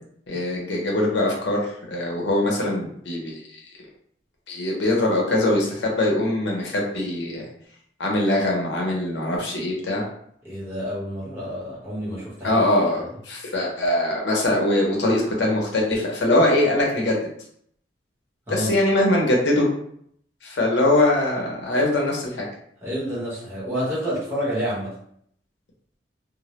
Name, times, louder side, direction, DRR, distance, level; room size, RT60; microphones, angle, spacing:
voice 1, 0.3-3.4 4.5-7.4 8.0-10.0 12.4-17.1 18.5-19.7 20.4-22.3, left 1 dB, 80° left, -2 dB, 0.7 m, -22 dB
voice 2, 10.4-12.6 13.0-13.1 18.5-18.8 22.8-24.9, equal, 15° right, -8 dB, 0.9 m, -29 dB
2.1 x 2.0 x 2.9 m, 0.67 s
head